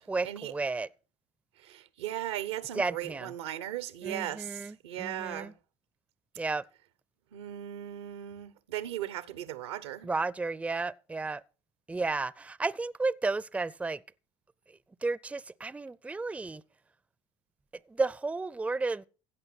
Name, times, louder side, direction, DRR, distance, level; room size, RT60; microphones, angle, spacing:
voice 1, 0.1-0.9 2.7-3.3 4.0-5.5 6.4-6.6 10.0-11.4 11.9-14.0 14.7-16.6 17.9-19.1, right 3 dB, 10° right, 0.4 m, -33 dB
voice 2, 1.6-5.5 7.3-10.1, right 12 dB, 85° right, 0.8 m, -37 dB
16.0 x 5.4 x 5.9 m
hypercardioid pair, 75°, 14 cm